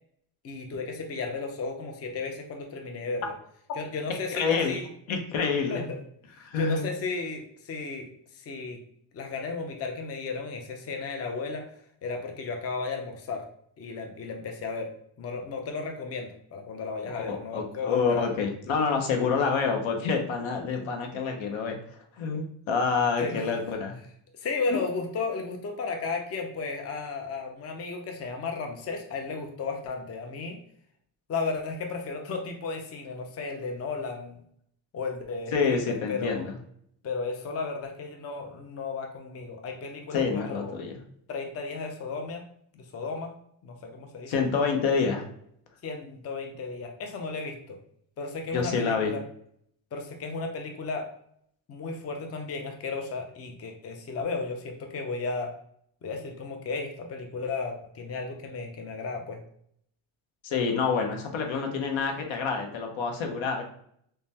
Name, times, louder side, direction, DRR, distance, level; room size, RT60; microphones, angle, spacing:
voice 1, 0.4-3.3 3.8-4.8 5.7-6.0 6.3-8.1 8.3-8.8 9.1-11.7 12.0-13.4 13.8-14.9 15.2-18.3 23.2-23.5 24.3-30.6 31.3-34.4 34.9-36.4 37.0-40.7 41.3-42.4 42.7-43.3 43.6-44.3 45.8-47.8 48.2-49.2 49.9-51.1 51.7-55.5 56.0-59.4, left 4 dB, 35° left, 4 dB, 0.5 m, -34 dB
voice 2, 4.1-4.8 5.1-5.8 6.4-6.8 17.0-24.0 35.5-36.5 40.1-41.0 44.3-45.3 48.5-49.1 60.4-63.6, left 5 dB, 80° left, 3 dB, 0.7 m, -27 dB
3.2 x 2.2 x 2.7 m, 0.68 s
cardioid pair, 100°, 46 cm